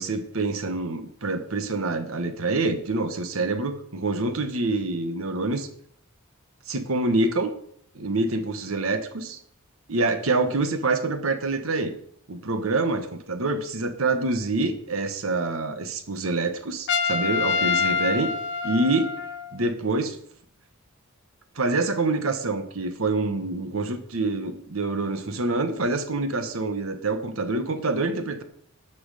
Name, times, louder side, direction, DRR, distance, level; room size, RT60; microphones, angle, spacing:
voice 1, 0.0-5.7 6.7-7.5 7.9-9.4 9.9-11.9 12.3-18.3 18.6-19.1 19.5-20.2 21.5-28.4, right 3 dB, 70° right, 9 dB, 1.2 m, -26 dB
Trumpet, 16.9-19.6, left 5 dB, 55° left, 0.8 m, -26 dB
12.0 x 6.0 x 4.9 m, 0.65 s
head